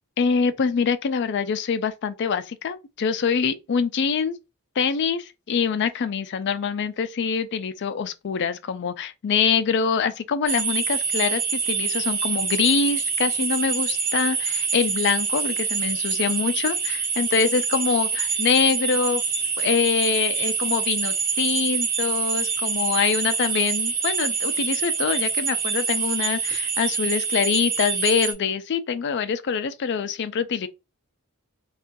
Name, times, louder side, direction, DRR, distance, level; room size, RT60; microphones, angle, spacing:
voice 1, 0.2-4.4 4.8-19.2 19.6-30.7, left 6 dB, 50° left, 0.4 m, -24 dB
sound 1, 10.5-28.3, right 5 dB, 40° right, 0.8 m, -26 dB
3.7 x 2.4 x 2.6 m
head